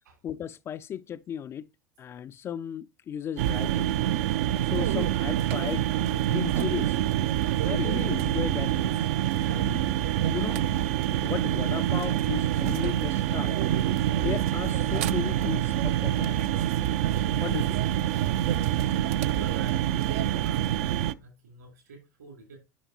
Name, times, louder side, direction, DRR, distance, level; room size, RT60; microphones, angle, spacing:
voice 1, 0.2-1.7 2.0-4.1 4.7-7.0 7.7-9.1 9.4-9.9 10.3-10.7 11.2-13.6 14.2-16.4 17.4-17.8, left 9 dB, 25° left, 0.3 m, -35 dB
sound 1, 3.4-21.1, right 11 dB, 55° right, 0.4 m, -26 dB
voice 2, 19.3-22.6, right 4 dB, 75° right, 3.3 m, -47 dB
10.5 x 5.7 x 2.9 m
figure-of-eight pair, 75°, 10 cm